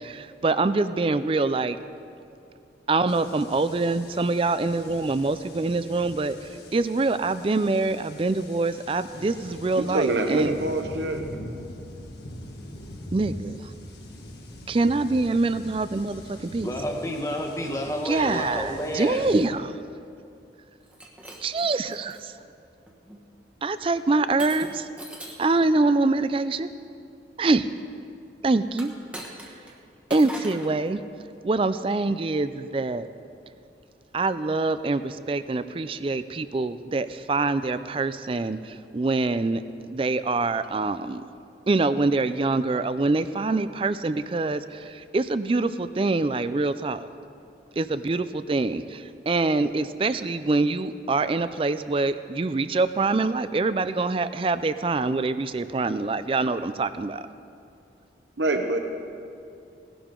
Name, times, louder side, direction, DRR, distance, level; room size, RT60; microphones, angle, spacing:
voice 1, 0.0-1.8 2.9-6.4 6.7-10.5 13.1-13.7 14.7-16.7 18.1-19.8 21.4-22.3 23.6-24.9 25.4-26.7 27.4-27.7 28.4-28.9 30.1-31.0 31.4-33.1 34.1-41.2 41.7-47.1 47.8-57.2, right 3 dB, 30° right, 13 dB, 0.4 m, -25 dB
sound 1, 3.1-19.5, left 1 dB, 70° left, 1.7 m, -43 dB
voice 2, 9.8-11.2 58.4-58.8, right 2 dB, 85° right, 5 dB, 0.9 m, -25 dB
voice 3, 16.6-19.2, equal, 15° left, 1 dB, 1.2 m, -30 dB
Shatter, 20.8-22.2 22.9-23.2 24.4-25.6 28.7-29.7 30.1-30.7, right 1 dB, 5° right, 1.1 m, -40 dB
18.5 x 12.0 x 3.8 m, 2.5 s
head